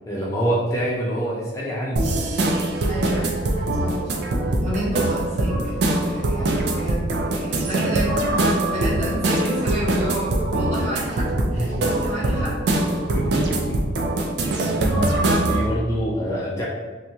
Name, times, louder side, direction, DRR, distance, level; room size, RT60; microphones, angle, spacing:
voice 1, 0.1-2.1 11.5-11.8 13.1-13.8 15.5-16.6, right 1 dB, 15° left, -6 dB, 0.4 m, -25 dB
sound 1, 2.0-15.7, right 2 dB, 65° right, 0.4 m, -23 dB
voice 2, 2.9-12.9, equal, 35° right, -7 dB, 0.9 m, -30 dB
2.8 x 2.2 x 2.7 m, 1.3 s
head